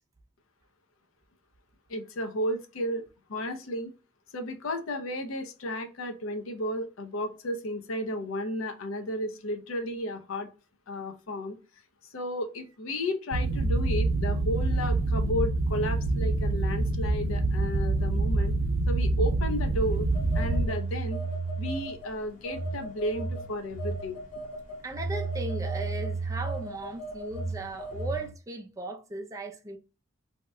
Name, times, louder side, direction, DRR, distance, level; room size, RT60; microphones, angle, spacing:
voice 1, 1.9-3.0 3.3-3.9 4.3-10.5 10.9-11.6 12.1-18.5 18.9-20.1 20.3-21.2 21.6-24.2, left 1 dB, 80° left, 0.6 m, -33 dB
sound 1, 13.3-20.7, right 2 dB, 75° right, 0.5 m, -26 dB
Telephone, 20.1-22.1 22.4-28.3, right 3 dB, 40° left, 0.8 m, -33 dB
voice 2, 24.8-29.8, right 2 dB, 15° right, 0.4 m, -37 dB
2.8 x 2.1 x 3.4 m
head